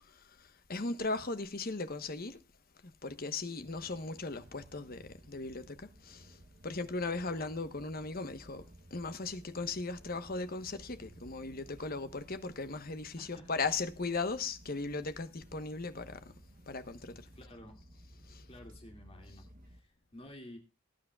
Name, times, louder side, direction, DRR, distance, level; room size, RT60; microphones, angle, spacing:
voice 1, 0.1-2.4 2.8-8.6 8.9-16.2 16.7-17.1 18.3-18.4, left 3 dB, 40° left, 1.1 m, -38 dB
sound 1, 3.6-19.8, right 1 dB, 40° right, 1.1 m, -57 dB
voice 2, 13.1-13.7 17.3-17.8 18.5-20.6, left 1 dB, 25° left, 2.6 m, -52 dB
20.5 x 9.6 x 2.3 m
head